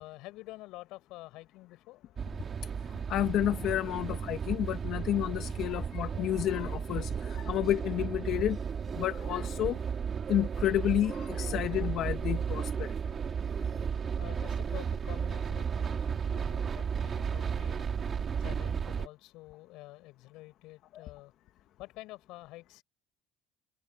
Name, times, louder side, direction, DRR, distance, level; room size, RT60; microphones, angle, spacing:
voice 1, 0.0-2.1 14.2-17.9 18.4-21.3 21.8-22.8, left 19 dB, 75° left, 7.4 m, -48 dB
sound 1, 2.2-19.1, right 7 dB, 30° right, 3.4 m, -34 dB
voice 2, 3.1-8.6 8.9-9.8 10.3-12.9 20.9-21.1, left 12 dB, 60° left, 1.9 m, -30 dB
cardioid pair, 135°, 0 cm